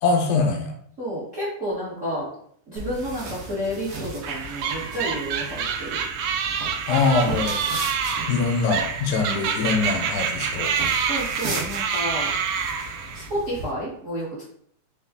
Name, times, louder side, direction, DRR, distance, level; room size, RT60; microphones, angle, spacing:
voice 1, 0.0-0.7 6.9-7.6 8.3-10.7, left 4 dB, 85° left, 4 dB, 2.1 m, -23 dB
voice 2, 1.0-2.3 2.7-6.0 11.0-12.3 13.1-14.4, equal, 45° right, -8 dB, 1.0 m, -30 dB
sound 1, 2.8-13.7, right 2 dB, 60° right, 1.8 m, -36 dB
sound 2, 4.2-13.3, right 6 dB, 85° right, 1.4 m, -27 dB
5.0 x 2.3 x 3.5 m, 0.64 s
omnidirectional pair, 3.5 m